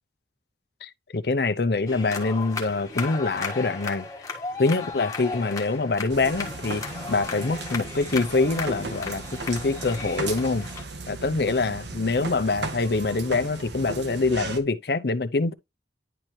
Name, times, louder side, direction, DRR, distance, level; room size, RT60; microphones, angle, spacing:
voice 1, 0.8-4.0 4.6-6.8 7.1-10.7 11.1-15.5, left 3 dB, 60° left, 0.6 m, -25 dB
sound 1, 1.9-10.8, left 4 dB, 20° left, 1.5 m, -35 dB
sound 2, 6.1-14.6, right 3 dB, 80° right, 1.2 m, -36 dB
10.0 x 4.4 x 3.1 m
head